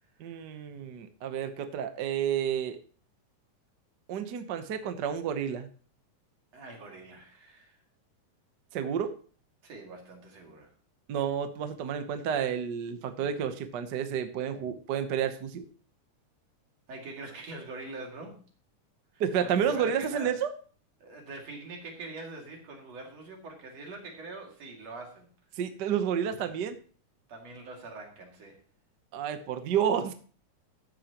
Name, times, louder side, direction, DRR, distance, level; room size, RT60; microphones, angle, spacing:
voice 1, 0.2-2.8 4.1-5.7 8.7-9.1 11.1-15.7 19.2-20.5 25.6-26.8 29.1-30.1, right 8 dB, 80° right, 8 dB, 0.9 m, -30 dB
voice 2, 6.5-7.8 9.6-10.7 16.9-18.4 19.1-20.3 21.0-25.3 27.3-28.6, right 3 dB, 60° right, 1 dB, 3.5 m, -43 dB
13.5 x 9.3 x 3.0 m, 0.41 s
omnidirectional pair, 3.5 m